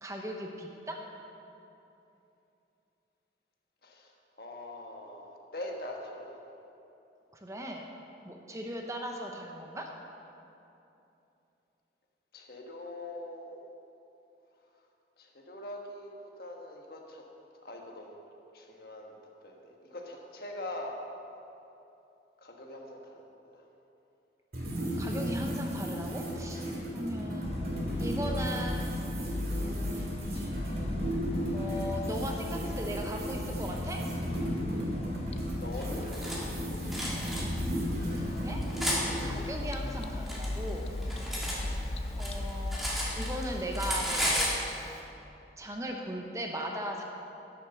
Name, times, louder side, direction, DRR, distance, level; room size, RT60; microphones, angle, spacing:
voice 1, 0.0-1.0 7.4-7.9 8.2-9.9 25.0-26.7 26.9-27.5 28.0-28.9 29.6-30.7 31.5-34.0 38.1-38.6 38.9-40.9 42.2-42.8 43.1-44.5 45.6-47.0, equal, 15° right, 2 dB, 0.8 m, -38 dB
voice 2, 3.8-6.4 12.3-13.7 15.2-16.1 16.4-17.2 17.6-18.1 18.5-19.2 19.4-21.0 22.4-23.6 35.5-37.1, left 1 dB, 55° left, 1 dB, 1.3 m, -43 dB
sound 1, 24.5-39.3, equal, 60° right, 2.2 m, -35 dB
sound 2, 27.4-44.6, left 2 dB, 35° left, 0.5 m, -38 dB
Cutlery silverware, 35.8-36.4 36.9-37.4 38.1-39.0 39.9-41.6 41.9-43.5 43.7-44.6, equal, ahead, 1.7 m, -33 dB
11.0 x 6.6 x 6.9 m, 2.9 s
head